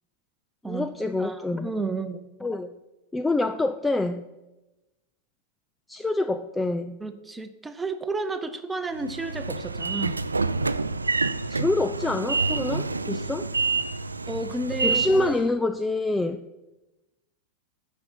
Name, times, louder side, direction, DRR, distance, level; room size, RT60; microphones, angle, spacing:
voice 1, 0.6-1.7 2.4-2.7 3.1-4.2 5.9-7.0 11.5-13.5 14.8-16.4, left 2 dB, 10° left, 10 dB, 0.4 m, -26 dB
voice 2, 1.2-2.2 7.0-10.2 14.3-15.0, right 3 dB, 10° right, 9 dB, 0.8 m, -32 dB
Train / Sliding door, 9.0-15.5, right 3 dB, 80° right, 0.4 m, -28 dB
9.7 x 5.5 x 5.8 m, 1.0 s
figure-of-eight pair, 90°, 0 cm